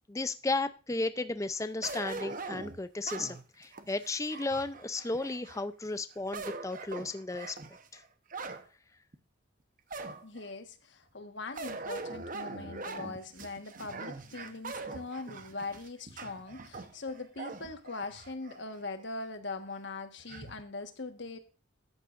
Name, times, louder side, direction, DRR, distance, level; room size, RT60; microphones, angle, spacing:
voice 1, 0.1-7.6 7.9-8.0, left 2 dB, 15° left, 12 dB, 0.4 m, -34 dB
sound 1, 1.8-5.6 6.1-8.7 9.1-9.2 9.9-10.5 11.6-18.6 19.0-19.1 20.3-20.6, right 3 dB, 40° right, 0.9 m, -42 dB
voice 2, 10.2-21.4, left 3 dB, 60° left, 7 dB, 1.4 m, -41 dB
13.5 x 9.7 x 2.5 m, 0.33 s
head